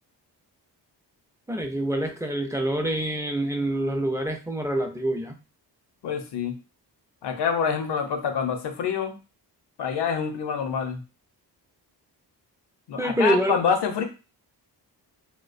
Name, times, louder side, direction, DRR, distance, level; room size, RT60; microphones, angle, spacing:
voice 1, 1.5-5.4 13.0-13.6, right 1 dB, 10° right, 3 dB, 0.4 m, -26 dB
voice 2, 6.0-6.6 7.2-9.2 9.8-11.0 12.9-14.0, left 6 dB, 70° left, 6 dB, 0.6 m, -26 dB
2.3 x 2.1 x 2.4 m, 0.31 s
cardioid pair, 70°, 42 cm